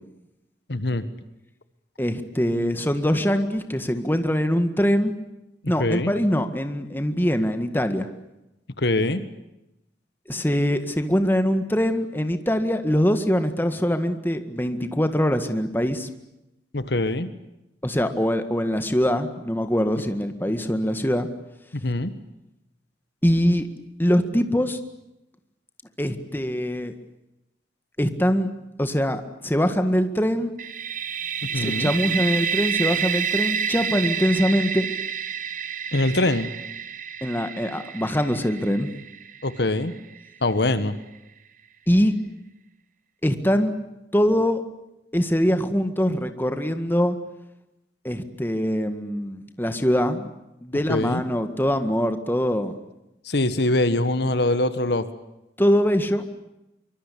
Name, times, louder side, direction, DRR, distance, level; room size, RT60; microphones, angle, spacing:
voice 1, 0.7-1.0 5.6-6.1 8.8-9.2 16.7-17.3 21.7-22.1 31.5-31.9 35.9-36.5 39.4-39.9 40.4-41.0 50.9-51.2 53.2-55.1, left 2 dB, 60° left, 12 dB, 1.5 m, -23 dB
voice 2, 2.0-5.1 5.7-8.1 10.3-16.1 17.8-21.3 23.2-23.7 24.0-24.8 26.0-26.9 28.0-28.5 28.8-30.5 31.5-34.9 37.2-38.9 41.9-42.1 43.2-43.7 44.1-44.6 45.1-47.2 48.0-50.3 50.6-52.8 55.6-56.2, equal, 10° left, 8 dB, 1.8 m, -23 dB
sound 1, 30.6-40.3, right 7 dB, 45° right, 1.3 m, -29 dB
24.5 x 24.5 x 8.6 m, 0.89 s
head